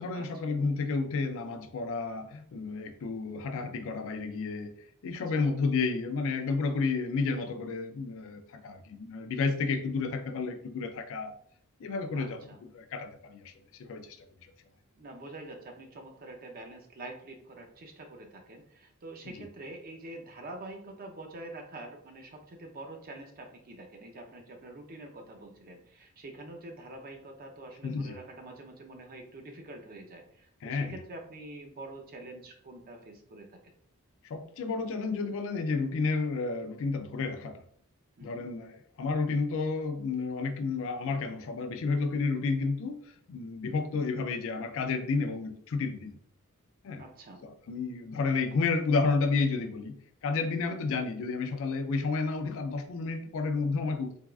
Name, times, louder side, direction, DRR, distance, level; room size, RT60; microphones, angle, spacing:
voice 1, 0.0-4.7 5.0-11.4 11.8-13.5 13.8-14.2 19.3-19.4 27.8-28.2 30.6-31.0 34.2-37.6 38.2-43.0 43.3-46.2 46.8-47.0 47.4-50.0 50.2-54.2, left 4 dB, 60° left, 0.4 m, -31 dB
voice 2, 12.1-12.6 15.0-33.5 38.2-38.5 47.0-47.4 50.5-50.6, right 2 dB, 40° right, 0.5 m, -46 dB
3.4 x 2.3 x 2.3 m
head